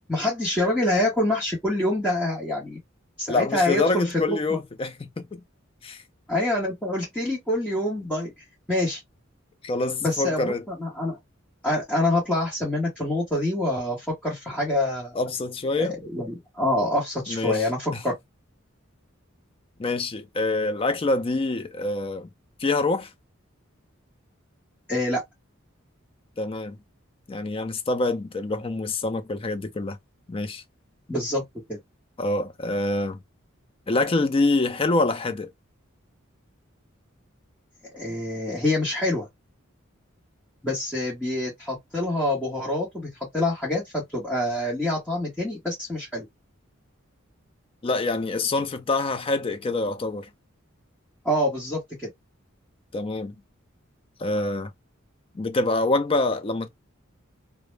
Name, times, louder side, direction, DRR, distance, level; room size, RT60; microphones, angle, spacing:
voice 1, 0.1-2.8 3.2-4.6 6.3-8.3 8.7-9.0 10.0-11.2 11.6-15.1 15.8-18.2 24.9-25.2 31.1-31.8 37.9-39.3 40.6-46.3 51.2-52.1, left 1 dB, 5° left, 0.8 m, -26 dB
voice 2, 3.3-5.4 5.8-6.0 9.6-10.6 15.2-16.0 17.3-18.0 19.8-22.3 22.6-23.1 26.4-26.8 27.3-30.0 30.3-30.6 32.2-33.2 33.9-35.5 47.8-50.3 52.9-53.4 54.2-54.7 55.3-56.7, left 2 dB, 25° left, 0.4 m, -26 dB
2.0 x 2.0 x 3.1 m
head